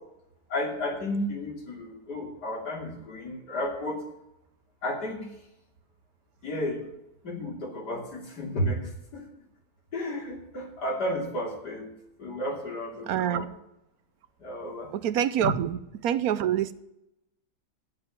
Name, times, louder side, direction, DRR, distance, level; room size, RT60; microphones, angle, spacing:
voice 1, 0.5-4.0 4.8-5.3 6.4-6.9 7.2-9.2 9.9-11.9 12.2-13.5 14.4-14.9 15.4-15.5, left 1 dB, 85° left, 0 dB, 3.4 m, -32 dB
voice 2, 13.1-13.5 15.0-15.7 16.0-16.7, right 10 dB, 70° right, 14 dB, 1.0 m, -25 dB
9.8 x 7.8 x 7.3 m, 0.86 s
omnidirectional pair, 1.7 m